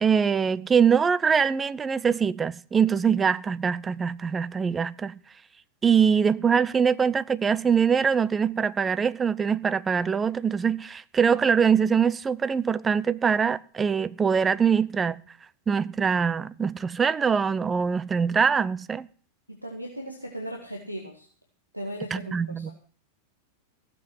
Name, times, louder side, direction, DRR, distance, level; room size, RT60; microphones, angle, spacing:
voice 1, 0.0-5.1 5.8-15.2 15.7-19.0 22.1-22.7, right 6 dB, 15° right, 0.6 m, -23 dB
voice 2, 19.5-21.3 21.7-22.7, equal, 90° right, 2.1 m, -37 dB
16.0 x 7.8 x 7.8 m
figure-of-eight pair, 90°, 0 cm